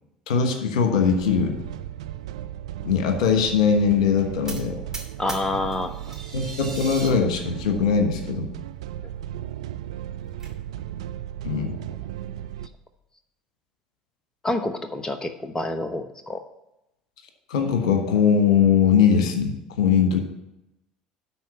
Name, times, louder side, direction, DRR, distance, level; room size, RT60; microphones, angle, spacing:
voice 1, 0.3-1.6 2.8-4.8 6.3-8.5 11.4-11.8 17.5-20.2, left 6 dB, 70° left, 6 dB, 1.1 m, -21 dB
sound 1, 1.0-12.7, right 12 dB, 70° right, 0.4 m, -36 dB
sound 2, 4.5-6.3 6.6-7.3 7.8-7.9 8.2-8.3 8.7-8.8 9.9-10.5, right 3 dB, 15° right, 2.5 m, -41 dB
voice 2, 5.2-6.1 14.4-16.4, left 2 dB, 20° left, 9 dB, 0.9 m, -28 dB
sound 3, 5.9-7.1, right 3 dB, 85° right, 2.5 m, -39 dB
10.5 x 4.3 x 7.1 m, 0.88 s
figure-of-eight pair, 65°, 4 cm